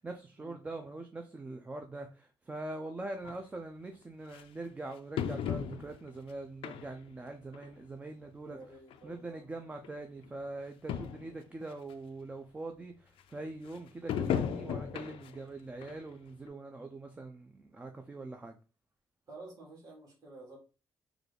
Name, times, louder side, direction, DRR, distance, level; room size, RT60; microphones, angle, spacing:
voice 1, 0.0-8.6 9.0-18.6, right 2 dB, 15° right, 4 dB, 0.3 m, -43 dB
sound 1, 3.2-3.3 4.3-4.4 5.2-6.1 6.6-7.1 7.5-7.7 8.6-8.7 8.9-9.0 9.8-9.9 10.2-10.3 10.6-10.7 10.9-11.3 11.9-12.0 14.1-15.4 15.8-16.0 16.5-16.6, left 8 dB, 80° left, 0.4 m, -35 dB
voice 2, 8.4-9.5 19.3-20.6, right 2 dB, 40° right, -3 dB, 1.8 m, -50 dB
3.7 x 2.3 x 3.3 m, 0.34 s
cardioid pair, 140°, 9 cm